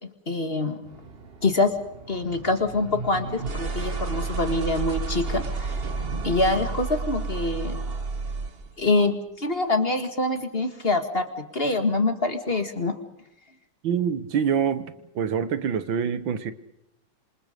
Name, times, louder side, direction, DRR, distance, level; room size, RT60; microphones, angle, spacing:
voice 1, 0.3-0.8 1.4-1.7 2.1-5.8 6.2-7.8 8.8-13.0, left 2 dB, 30° left, 7 dB, 2.0 m, -25 dB
sound 1, 0.8-8.7, right 4 dB, 35° right, 1.2 m, -32 dB
voice 2, 13.8-16.5, right 7 dB, 65° right, 13 dB, 1.9 m, -26 dB
27.0 x 26.5 x 5.2 m, 0.83 s
omnidirectional pair, 2.3 m